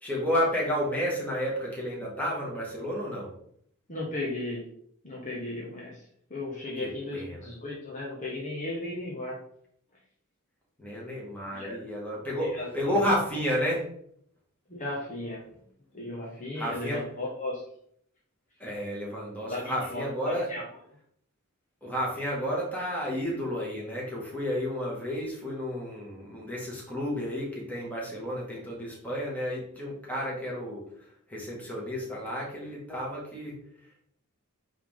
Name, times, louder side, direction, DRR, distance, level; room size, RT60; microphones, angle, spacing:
voice 1, 0.0-3.3 6.8-7.5 10.8-13.9 16.6-17.0 18.6-20.5 21.8-30.8 31.3-33.6, equal, 5° left, -5 dB, 2.2 m, -31 dB
voice 2, 3.9-4.6 5.0-9.4 11.5-11.8 12.4-13.0 14.7-15.4 15.9-17.6 19.5-20.6, left 2 dB, 35° left, -3 dB, 1.3 m, -36 dB
8.3 x 3.7 x 3.8 m, 0.67 s
head